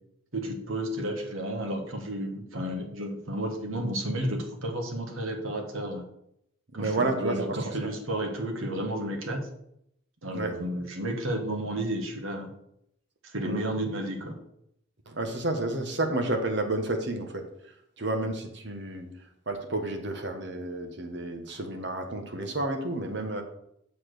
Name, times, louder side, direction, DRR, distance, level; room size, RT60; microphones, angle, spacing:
voice 1, 0.3-6.0 6.7-9.5 10.2-12.5 13.2-14.4, right 1 dB, 85° right, 4 dB, 1.5 m, -32 dB
voice 2, 6.7-7.6 7.8-7.9 10.3-10.5 13.4-13.6 15.1-17.4 18.0-19.1 19.5-23.4, right 2 dB, 60° right, 5 dB, 1.2 m, -30 dB
7.2 x 4.2 x 6.6 m, 0.76 s
head